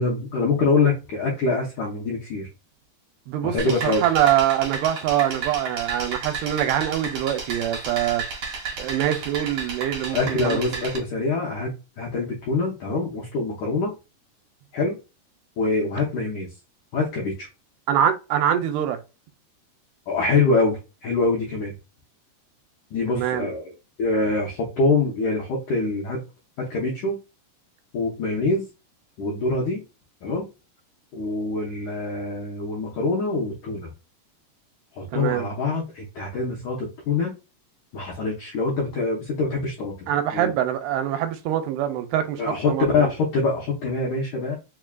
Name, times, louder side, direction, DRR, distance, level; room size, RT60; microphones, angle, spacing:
voice 1, 0.0-2.5 3.4-4.0 10.1-13.9 14.7-15.0 15.6-16.5 16.9-17.5 20.1-21.7 22.9-23.7 24.0-26.2 26.6-27.2 27.9-28.7 29.2-29.8 30.2-30.5 31.1-33.9 35.0-37.3 37.9-40.5 42.4-44.6, left 3 dB, 80° left, 1.7 m, -25 dB
sound 1, 3.6-11.0, right 4 dB, 70° right, 1.4 m, -33 dB
voice 2, 3.8-8.2 8.8-10.6 17.9-19.0 23.1-23.5 35.1-35.5 40.1-43.1, right 11 dB, 85° right, 2.6 m, -24 dB
6.1 x 2.3 x 2.3 m
omnidirectional pair, 4.7 m